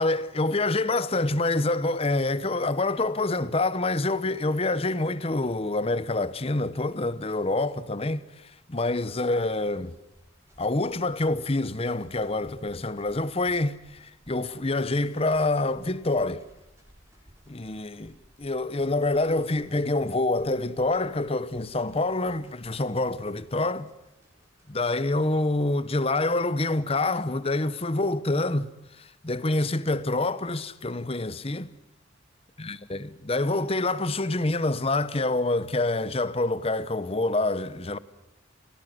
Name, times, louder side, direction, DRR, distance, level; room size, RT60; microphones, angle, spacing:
voice 1, 0.0-10.0 10.6-16.4 17.5-23.9 24.7-28.7 29.0-31.7 32.6-38.0, left 2 dB, 30° left, 0.9 m, -26 dB
sound 1, 7.2-24.9, equal, 15° right, 7.7 m, -59 dB
29.5 x 17.5 x 9.4 m
head